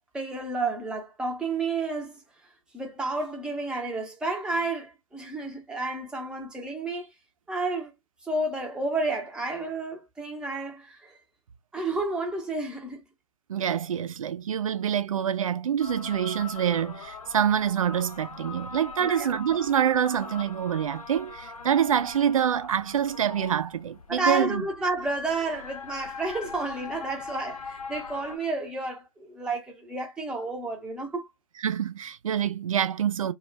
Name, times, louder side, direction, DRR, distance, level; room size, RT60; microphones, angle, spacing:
voice 1, 0.1-2.2 2.7-7.1 7.5-7.9 8.2-11.2 11.7-13.0 19.0-19.3 24.1-31.3, right 2 dB, 5° right, 0.7 m, -31 dB
voice 2, 13.5-24.7 31.6-33.3, right 9 dB, 65° right, 0.5 m, -26 dB
sound 1, 15.8-28.4, left 5 dB, 80° left, 0.7 m, -42 dB
2.4 x 2.1 x 3.1 m
figure-of-eight pair, 130°, 19 cm